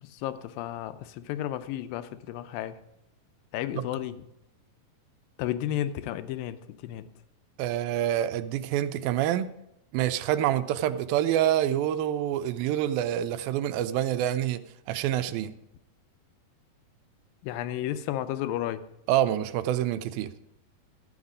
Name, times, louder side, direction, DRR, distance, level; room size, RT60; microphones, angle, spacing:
voice 1, 0.0-2.8 3.5-4.2 5.4-7.1 17.4-18.8, left 12 dB, 80° left, 11 dB, 2.3 m, -33 dB
voice 2, 7.6-9.5 9.9-14.6 14.9-15.5 19.1-20.3, right 12 dB, 85° right, 12 dB, 2.4 m, -26 dB
12.5 x 8.1 x 5.0 m, 0.84 s
omnidirectional pair, 4.2 m